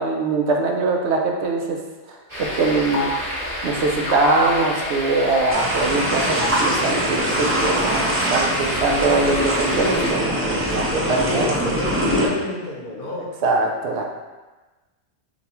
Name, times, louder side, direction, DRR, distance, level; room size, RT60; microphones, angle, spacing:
voice 1, 0.0-1.8 2.4-3.1 3.6-11.5 13.4-14.0, right 3 dB, 75° right, 1 dB, 0.9 m, -22 dB
sound 1, 2.3-10.1, equal, 35° right, 1.5 m, -29 dB
sound 2, 2.9-3.3 4.0-4.4 5.3-5.6 6.4-6.7 7.6-8.0 9.4-9.9 10.7-11.4, left 2 dB, 85° left, 0.9 m, -30 dB
sound 3, 5.5-12.3, equal, 15° right, 0.6 m, -23 dB
voice 2, 10.7-13.3, left 1 dB, 55° left, -3 dB, 1.0 m, -29 dB
6.7 x 2.3 x 3.0 m, 1.2 s
omnidirectional pair, 1.2 m